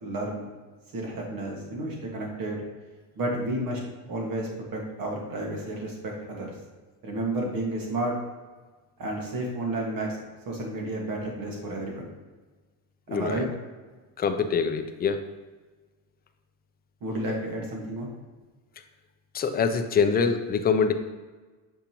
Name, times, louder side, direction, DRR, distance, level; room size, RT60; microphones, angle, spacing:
voice 1, 0.0-0.5 0.9-2.6 3.2-3.8 4.1-6.5 7.0-8.1 9.0-10.2 10.5-12.1 13.1-13.5 17.0-18.1, right 1 dB, 55° right, -1 dB, 1.8 m, -31 dB
voice 2, 13.1-13.5 14.2-15.2 19.3-20.9, left 5 dB, 25° left, 7 dB, 0.4 m, -24 dB
7.1 x 5.0 x 2.9 m, 1.3 s
cardioid pair, 135°, 43 cm